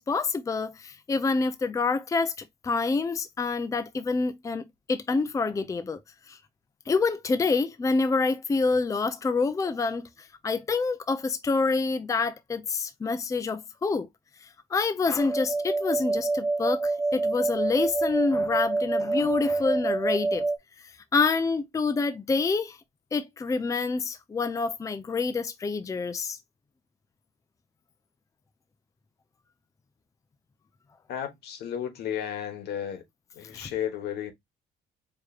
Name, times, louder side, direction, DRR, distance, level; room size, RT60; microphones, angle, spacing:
voice 1, 0.0-6.0 6.3-6.4 6.9-14.1 14.4-20.4 20.8-22.8 23.1-26.4 33.5-33.7, left 4 dB, 20° left, 0.5 m, -27 dB
sound 1, 15.2-20.6, right 3 dB, 10° right, 1.0 m, -27 dB
voice 2, 31.1-33.0 33.4-34.3, left 9 dB, 75° left, 1.2 m, -33 dB
4.8 x 3.0 x 2.3 m
cardioid pair, 110°, 17 cm